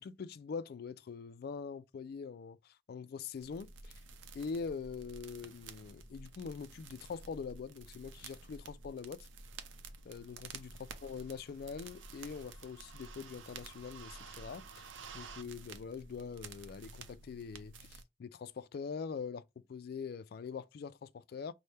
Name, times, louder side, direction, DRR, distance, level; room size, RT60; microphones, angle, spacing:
voice 1, 0.0-3.9 4.3-9.3 10.0-14.8 15.1-21.5, left 5 dB, 55° left, 0.3 m, -43 dB
sound 1, 3.4-18.0, right 4 dB, 85° right, 0.6 m, -51 dB
5.5 x 2.1 x 3.3 m
head